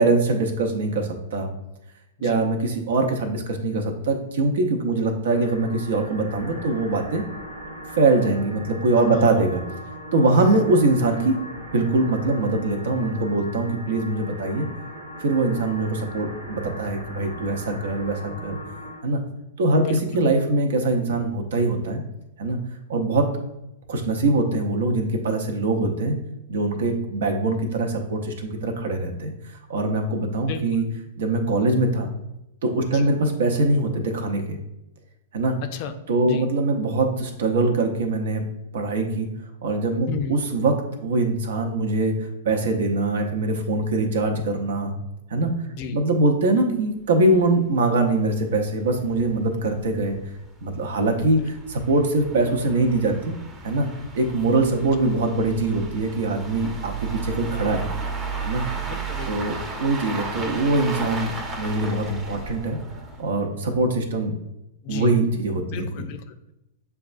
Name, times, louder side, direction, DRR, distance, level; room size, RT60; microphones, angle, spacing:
voice 1, 0.0-1.5 2.2-7.2 8.0-9.6 10.1-11.4 11.7-14.7 15.2-18.6 19.0-19.2 19.6-22.0 22.4-22.6 22.9-23.3 23.9-26.2 26.5-30.8 31.2-32.1 32.6-34.6 35.3-35.6 36.1-38.4 38.7-39.3 39.6-44.9 45.3-45.5 45.9-50.2 50.6-53.3 53.6-53.9 54.1-57.9 58.4-58.7 59.3-61.3 61.6-62.8 63.2-64.4 64.9-66.1, right 2 dB, 70° right, 4 dB, 0.7 m, -23 dB
sound 1, 5.3-19.0, equal, 85° right, 1.1 m, -39 dB
voice 2, 9.1-9.4 19.7-20.3 30.5-30.8 32.9-33.1 35.6-35.9 36.3-36.5 40.1-40.4 45.7-46.0 51.4-51.5 58.9-59.4 64.8-65.2 65.7-66.5, left 7 dB, 50° left, 7 dB, 0.4 m, -34 dB
sound 2, 47.0-47.1 47.3-47.4 47.9-48.0 48.3-48.4 49.0-63.4, right 4 dB, 20° right, 0.8 m, -34 dB
6.8 x 2.3 x 2.5 m, 0.88 s
hypercardioid pair, 110°, 0 cm